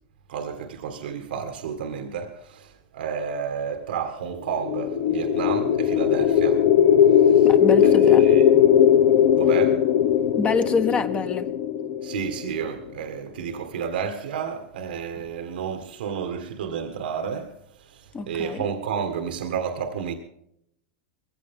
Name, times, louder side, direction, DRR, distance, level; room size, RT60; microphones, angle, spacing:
voice 1, 0.3-6.7 7.2-7.5 7.8-8.5 9.4-9.8 12.0-20.1, right 7 dB, 90° right, 1.7 m, -31 dB
sound 1, 4.5-12.7, left 9 dB, 65° left, 1.1 m, -19 dB
voice 2, 7.4-8.2 10.3-11.5 18.1-18.6, left 4 dB, 25° left, 1.3 m, -26 dB
20.5 x 16.0 x 3.7 m
supercardioid pair, 135°, 5 cm